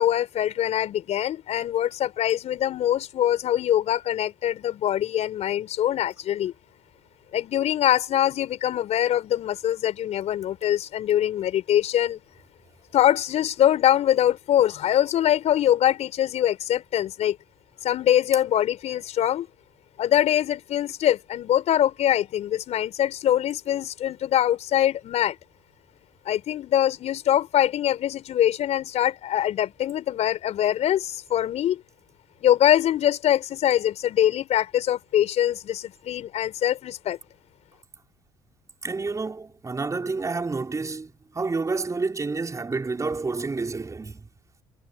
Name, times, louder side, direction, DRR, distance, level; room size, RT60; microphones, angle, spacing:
voice 1, 0.0-6.5 7.3-12.2 12.9-17.4 17.8-19.5 20.0-25.4 26.2-31.8 32.4-37.2, left 11 dB, 60° left, 4.9 m, -23 dB
voice 2, 38.8-44.3, right 3 dB, 25° right, 5.5 m, -29 dB
hypercardioid pair, 60°, 13 cm